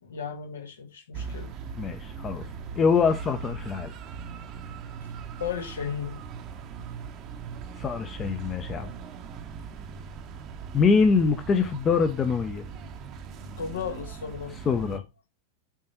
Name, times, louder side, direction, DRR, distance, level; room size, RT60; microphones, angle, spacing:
voice 1, 0.0-1.5 5.4-6.3 13.6-14.5, left 7 dB, 65° left, 1.7 m, -35 dB
sound 1, 1.1-15.0, right 6 dB, 35° right, 1.0 m, -40 dB
voice 2, 1.8-2.4 2.8-3.9 7.8-8.9 10.7-12.6 14.7-15.0, left 5 dB, 25° left, 0.9 m, -24 dB
7.4 x 4.4 x 4.4 m
figure-of-eight pair, 90°, 0 cm